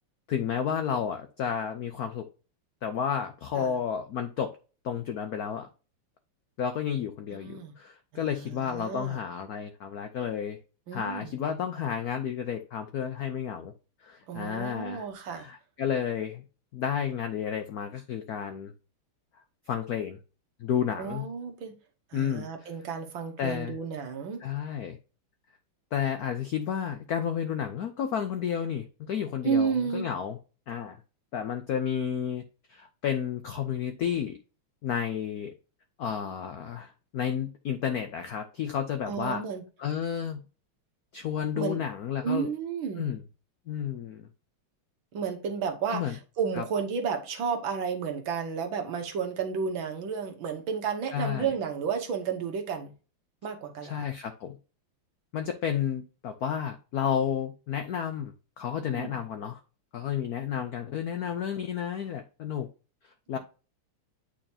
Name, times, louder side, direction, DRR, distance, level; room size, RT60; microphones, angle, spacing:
voice 1, 0.3-2.2 2.8-4.5 4.8-5.7 6.6-10.6 10.9-13.7 14.0-16.4 16.7-18.7 19.7-20.2 20.6-21.3 22.1-22.7 23.4-23.8 24.4-25.0 25.9-30.4 30.7-31.0 31.3-32.4 32.7-34.4 34.8-35.5 36.0-39.4 39.8-40.4 41.1-42.5 42.9-43.2 43.7-44.3 45.9-46.2 46.5-46.6 51.1-51.5 53.8-54.6 55.3-59.6 59.9-62.7 63.3-63.4, left 8 dB, 80° left, 0.8 m, -31 dB
voice 2, 7.3-7.7 8.1-9.2 10.9-11.3 14.3-15.5 21.0-21.7 22.1-24.4 29.4-30.1 39.1-39.6 41.6-41.8 42.2-43.2 45.1-52.9 53.4-54.0 58.8-59.2, right 6 dB, 65° right, 1.8 m, -32 dB
8.8 x 4.4 x 2.8 m
omnidirectional pair, 2.4 m